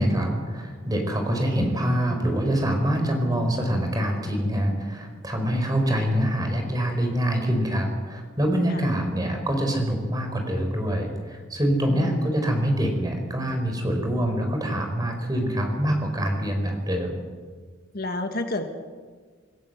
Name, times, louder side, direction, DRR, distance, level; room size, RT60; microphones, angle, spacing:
voice 1, 0.0-17.2, equal, 20° right, 3 dB, 4.6 m, -25 dB
voice 2, 11.9-12.2 17.9-18.6, left 2 dB, 50° left, 6 dB, 1.6 m, -29 dB
27.0 x 17.5 x 8.0 m, 1.5 s
head